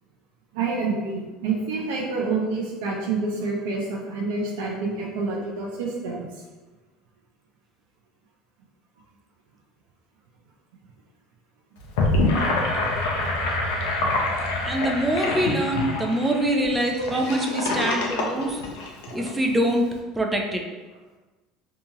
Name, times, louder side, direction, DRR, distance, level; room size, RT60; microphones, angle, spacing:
voice 1, 0.5-6.2 15.9-16.0 16.5-17.3, right 3 dB, 85° right, -2 dB, 0.5 m, -28 dB
Gurgling / Sink (filling or washing), 11.8-19.3, left 2 dB, 85° left, 0.5 m, -26 dB
voice 2, 14.7-18.6 19.1-19.9 20.2-20.6, right 1 dB, 10° right, 1 dB, 0.4 m, -24 dB
2.7 x 2.3 x 2.8 m, 1.2 s
supercardioid pair, 115°, 0 cm